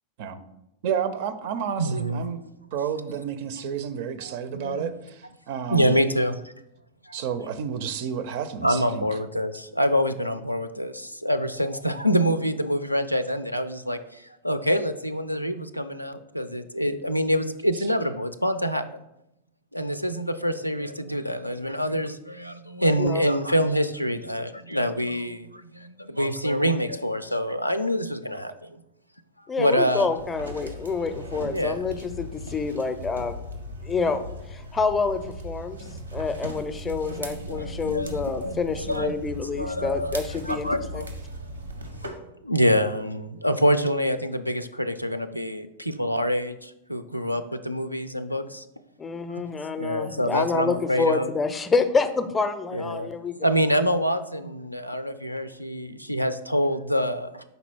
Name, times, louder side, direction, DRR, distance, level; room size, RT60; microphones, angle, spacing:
voice 1, 0.8-2.4 2.7-4.9 5.5-6.0 7.1-9.1, right 8 dB, 50° right, 12 dB, 0.5 m, -30 dB
voice 2, 1.8-2.3 4.2-4.9 5.7-6.5 7.0-7.2 8.6-18.8 19.7-28.8 29.6-30.1 31.4-31.8 36.8-39.1 39.5-40.2 40.5-41.1 42.0-42.1 42.4-48.6 49.3-49.4 49.8-51.3 52.7-53.1 53.4-57.4, equal, 90° left, 9 dB, 0.3 m, -26 dB
voice 3, 29.5-33.4 33.8-34.2 34.5-41.0 49.0-53.5, left 4 dB, 15° left, 10 dB, 0.5 m, -27 dB
sound 1, 30.1-42.1, equal, 80° right, 0.8 m, -38 dB
5.3 x 4.0 x 4.4 m, 0.86 s
figure-of-eight pair, 90°, 0 cm